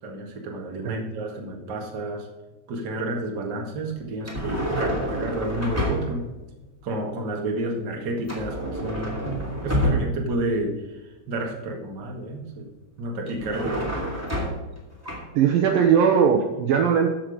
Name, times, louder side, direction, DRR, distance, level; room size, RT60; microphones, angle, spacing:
voice 1, 0.0-2.3 2.7-6.3 6.8-9.2 9.6-12.7 13.0-13.9, right 1 dB, 45° right, 1 dB, 1.5 m, -30 dB
sound 1, 4.2-6.3 8.3-10.4 13.3-14.8 15.0-15.2, equal, 5° right, 1.7 m, -28 dB
voice 2, 15.4-17.1, right 7 dB, 75° right, 4 dB, 2.2 m, -19 dB
14.0 x 6.5 x 5.1 m, 1.1 s
omnidirectional pair, 4.8 m